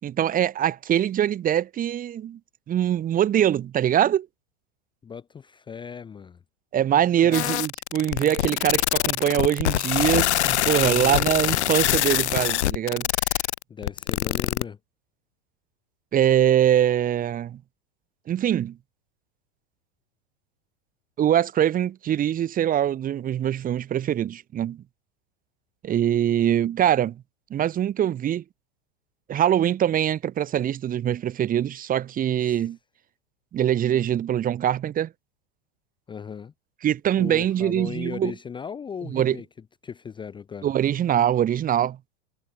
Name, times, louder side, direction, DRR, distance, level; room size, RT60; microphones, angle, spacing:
voice 1, 0.0-2.4 2.7-4.3 6.7-13.1 16.1-17.6 18.3-18.8 21.2-24.8 25.8-27.2 27.5-28.4 29.3-32.8 33.5-35.1 36.8-38.3 39.1-39.4 40.6-42.0, right 10 dB, 25° right, 1.3 m, -23 dB
voice 2, 5.0-6.4 7.2-7.5 10.8-11.7 13.7-14.8 32.5-32.6 36.1-36.5 37.2-39.5 39.8-40.7, left 7 dB, 15° left, 0.7 m, -37 dB
sound 1, 7.3-14.6, left 13 dB, 90° left, 1.4 m, -24 dB
supercardioid pair, 130°, 33 cm